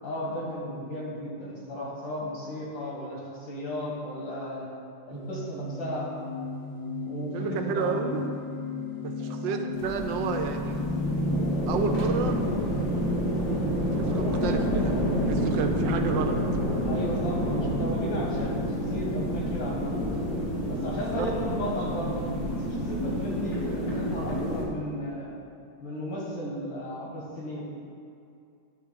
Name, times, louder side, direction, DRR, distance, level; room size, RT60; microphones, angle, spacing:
voice 1, 0.0-4.7 5.1-6.1 7.0-8.2 9.2-9.4 16.8-19.9 20.7-22.3 22.6-25.3 25.8-27.7, left 1 dB, 85° left, -3 dB, 2.4 m, -35 dB
sound 1, 5.1-24.3, right 1 dB, 30° right, 0.4 m, -38 dB
sound 2, 5.5-15.7, left 2 dB, 30° left, 0.7 m, -35 dB
voice 2, 7.3-8.3 9.0-10.8 11.2-11.3 11.7-12.4 14.0-15.0 15.3-16.4 20.9-21.3, right 6 dB, 85° right, 5 dB, 1.4 m, -31 dB
sound 3, 9.7-24.6, equal, 60° left, 2.1 m, -29 dB
11.0 x 3.8 x 5.7 m, 2.5 s
omnidirectional pair, 2.0 m